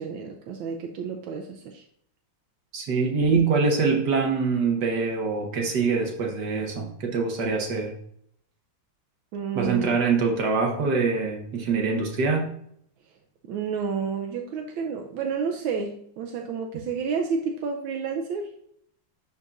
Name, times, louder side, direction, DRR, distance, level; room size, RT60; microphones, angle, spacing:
voice 1, 0.0-1.8 9.3-10.0 13.5-18.5, right 5 dB, 85° right, 3 dB, 1.4 m, -30 dB
voice 2, 2.7-7.9 9.5-12.5, right 4 dB, 60° right, 1 dB, 1.7 m, -24 dB
11.0 x 4.0 x 2.4 m, 0.69 s
omnidirectional pair, 2.2 m